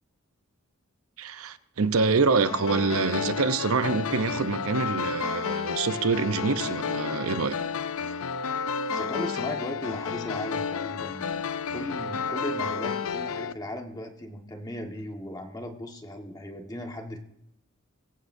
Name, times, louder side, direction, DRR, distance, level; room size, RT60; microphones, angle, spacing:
voice 1, 1.2-7.6, right 4 dB, 85° right, 0.7 m, -26 dB
sound 1, 2.5-13.5, left 6 dB, 80° left, 0.5 m, -31 dB
voice 2, 8.9-11.4 11.7-17.2, left 1 dB, 20° left, 1.5 m, -37 dB
23.0 x 14.5 x 2.7 m
head